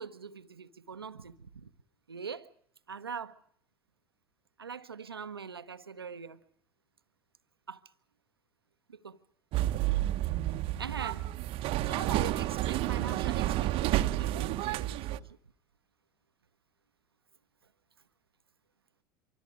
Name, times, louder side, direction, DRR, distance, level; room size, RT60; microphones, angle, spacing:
voice 1, 0.0-1.7 2.1-2.5 2.9-3.4 4.6-6.4 7.7-7.8 8.9-9.2 10.8-11.3 11.8-15.4, right 6 dB, 85° right, 0.9 m, -42 dB
sound 1, 9.5-15.2, right 15 dB, 50° right, 1.0 m, -30 dB
25.0 x 25.0 x 4.9 m
figure-of-eight pair, 70°, 12 cm